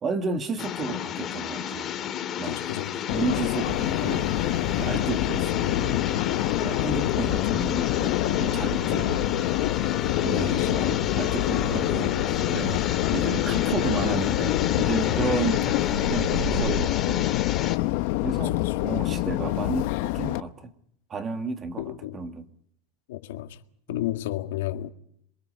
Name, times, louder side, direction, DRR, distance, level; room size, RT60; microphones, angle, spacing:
voice 1, 0.0-1.9 2.4-2.6 3.1-4.3 4.7-6.2 6.6-9.3 10.2-12.8 13.1-17.3 18.2-20.7 21.1-22.5 23.9-24.0, right 4 dB, 25° right, 1.9 m, -32 dB
sound 1, 0.6-17.8, left 9 dB, 30° left, 1.9 m, -32 dB
voice 2, 2.5-3.1 6.8-7.1 8.9-9.1 10.3-10.7 18.4-18.8 21.8-22.2 23.1-23.6 23.9-24.9, left 14 dB, 85° left, 1.8 m, -32 dB
Subway metro underground, 3.1-20.4, left 18 dB, 60° left, 0.8 m, -26 dB
sound 2, 3.6-17.0, right 5 dB, 40° right, 6.7 m, -37 dB
27.5 x 23.0 x 5.5 m
supercardioid pair, 150°, 0 cm